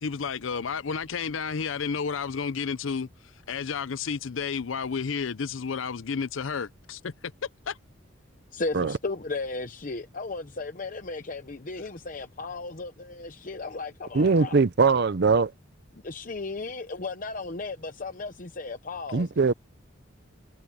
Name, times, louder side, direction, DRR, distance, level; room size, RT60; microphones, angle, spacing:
voice 1, 0.0-3.1 3.5-7.1 7.7-7.8, left 5 dB, 80° left, 0.6 m, -31 dB
voice 2, 8.5-14.6 16.0-19.3, left 3 dB, 45° left, 0.8 m, -35 dB
voice 3, 14.1-15.5 19.1-19.5, right 4 dB, 55° right, 0.6 m, -21 dB
head